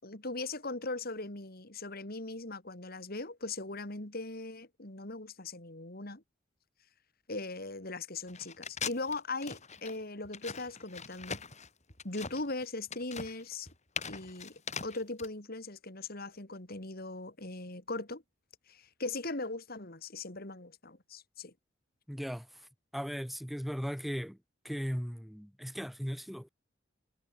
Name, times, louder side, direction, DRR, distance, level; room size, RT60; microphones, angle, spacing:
voice 1, 0.0-6.2 7.3-11.4 12.0-13.7 14.1-18.2 18.7-21.5, left 2 dB, 55° left, 3.9 m, -39 dB
sound 1, 8.3-15.3, left 6 dB, 40° left, 6.3 m, -41 dB
voice 2, 22.1-22.5 22.9-24.4 24.6-26.5, equal, ahead, 4.2 m, -37 dB
head